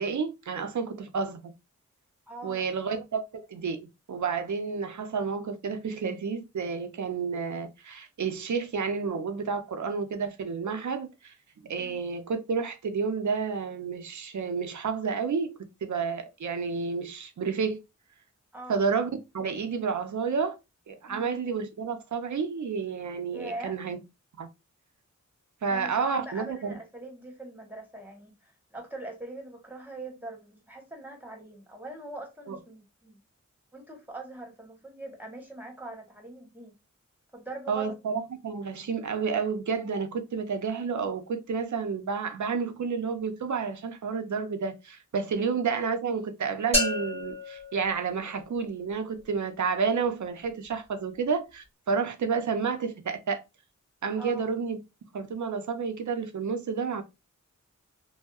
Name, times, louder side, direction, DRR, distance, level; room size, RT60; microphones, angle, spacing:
voice 1, 0.0-1.5 2.4-11.3 11.6-17.8 18.7-19.1 19.3-20.6 20.9-24.0 24.4-24.5 25.6-26.7 32.5-32.6 37.7-53.4 54.0-54.8 55.1-57.0, right 5 dB, 70° right, 0.5 m, -30 dB
voice 2, 2.3-2.7 11.8-12.0 18.5-18.8 21.0-21.4 23.3-23.7 25.7-33.2 33.7-36.7 37.3-38.0 54.2-54.4, right 2 dB, 5° right, 1.1 m, -42 dB
sound 1, 46.7-48.7, left 1 dB, 20° left, 1.3 m, -31 dB
2.6 x 2.0 x 2.3 m
wide cardioid pair, 50°, 31 cm